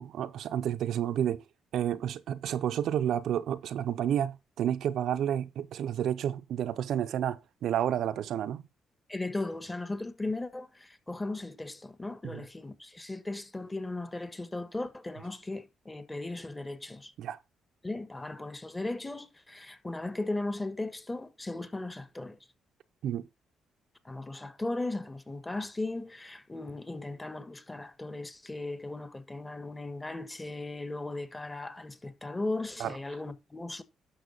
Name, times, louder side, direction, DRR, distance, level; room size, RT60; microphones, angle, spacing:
voice 1, 0.0-1.4 1.7-8.6 12.3-12.4 17.2-17.4 23.0-23.3 32.8-32.9, right 10 dB, 75° right, 0.7 m, -30 dB
voice 2, 9.1-17.1 17.8-22.4 24.0-33.8, left 2 dB, 15° left, 1.4 m, -37 dB
11.5 x 6.2 x 4.0 m
cardioid pair, 90°, 0 cm